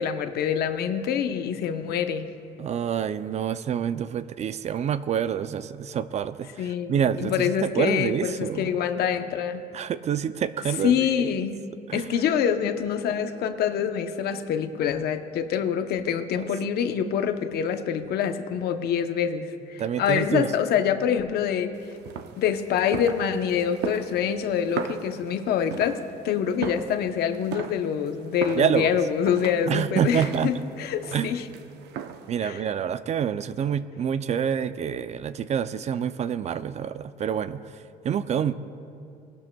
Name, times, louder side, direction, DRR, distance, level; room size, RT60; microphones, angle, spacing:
voice 1, 0.0-2.3 6.6-9.6 10.8-11.6 11.9-21.7 22.4-31.5 32.4-32.6, left 8 dB, 70° left, 8 dB, 0.8 m, -26 dB
voice 2, 2.6-8.8 9.7-11.1 11.9-12.3 16.4-16.5 19.8-20.5 28.6-29.0 29.7-30.5 31.1-31.3 32.3-37.6 38.0-38.5, right 8 dB, 40° right, 13 dB, 0.4 m, -27 dB
sound 1, 21.7-32.4, right 8 dB, 80° right, 0.7 m, -38 dB
19.5 x 12.0 x 2.3 m, 2.5 s
cardioid pair, 110°, 17 cm